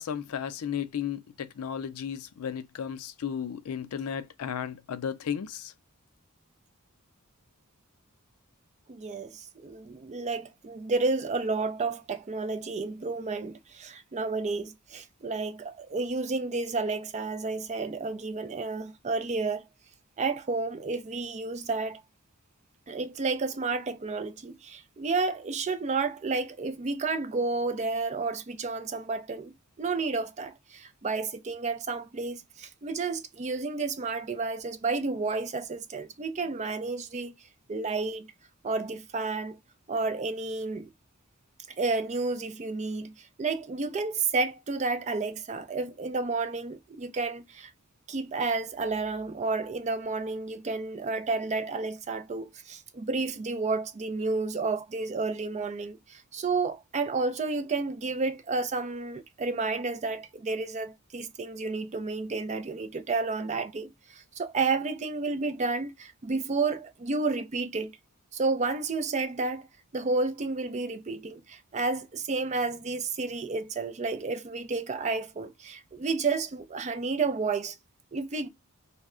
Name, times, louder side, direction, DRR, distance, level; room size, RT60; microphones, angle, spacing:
voice 1, 0.0-5.7, left 8 dB, 80° left, 0.4 m, -34 dB
voice 2, 8.9-19.6 20.2-22.0 22.9-37.3 37.7-38.3 38.6-39.6 39.9-40.9 41.8-43.1 43.4-47.7 48.1-67.9 68.3-69.7 69.9-77.7 78.1-78.5, right 3 dB, 30° right, 0.4 m, -31 dB
3.3 x 2.1 x 3.6 m
head